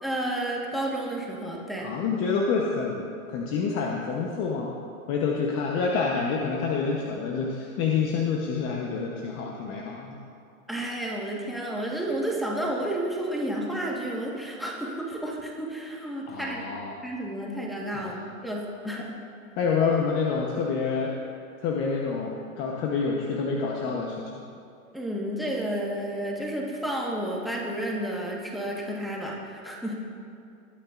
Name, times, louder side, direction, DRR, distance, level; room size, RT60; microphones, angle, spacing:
voice 1, 0.0-1.9 10.7-16.7 17.0-19.2 24.9-29.9, right 1 dB, ahead, -2 dB, 1.4 m, -31 dB
voice 2, 1.8-4.7 5.1-10.1 16.3-17.0 17.9-18.2 19.6-21.1 21.6-24.3, left 5 dB, 30° left, -1 dB, 0.9 m, -27 dB
20.0 x 8.9 x 2.5 m, 2.5 s
hypercardioid pair, 130°, 41 cm